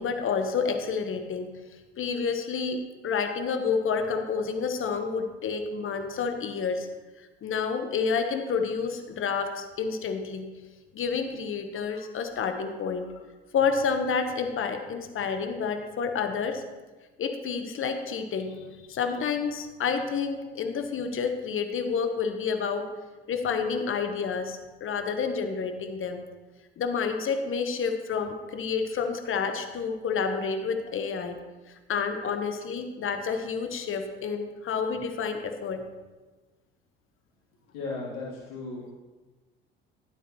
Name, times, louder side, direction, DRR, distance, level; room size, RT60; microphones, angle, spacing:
voice 1, 0.0-1.6 2.0-6.9 7.2-10.5 10.9-13.1 13.5-16.6 17.2-22.9 23.3-26.2 26.8-31.4 31.7-35.8, left 5 dB, 45° left, 7 dB, 1.1 m, -29 dB
voice 2, 37.7-39.0, left 3 dB, 75° left, -7 dB, 2.9 m, -36 dB
12.0 x 8.1 x 3.0 m, 1.2 s
hypercardioid pair, 65°, 29 cm